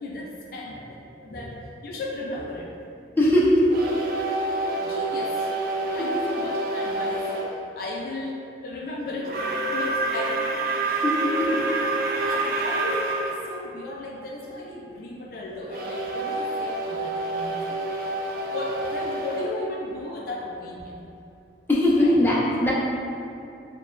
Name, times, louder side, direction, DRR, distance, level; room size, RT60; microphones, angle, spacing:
voice 1, 0.0-2.7 4.1-4.2 4.8-5.6 5.9-9.4 9.7-10.5 11.2-11.4 12.2-17.9 18.5-21.1 22.0-22.2, left 2 dB, 55° left, -2 dB, 0.4 m, -35 dB
voice 2, 3.2-3.6 10.9-11.5 21.7-22.7, left 1 dB, 10° left, -7 dB, 0.6 m, -20 dB
sound 1, 3.7-7.5 9.2-13.4 15.7-20.5, right 2 dB, 55° right, 0.4 m, -28 dB
6.3 x 2.3 x 2.4 m, 2.6 s
head